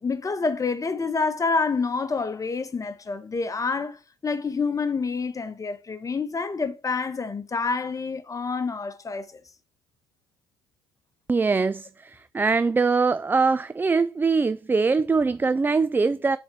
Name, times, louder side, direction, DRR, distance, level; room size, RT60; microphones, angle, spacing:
voice 1, 0.0-9.4, left 4 dB, 25° left, 1.2 m, -28 dB
voice 2, 11.3-16.4, right 4 dB, 15° right, 0.4 m, -22 dB
7.1 x 4.4 x 5.9 m
hypercardioid pair, 65°, 13 cm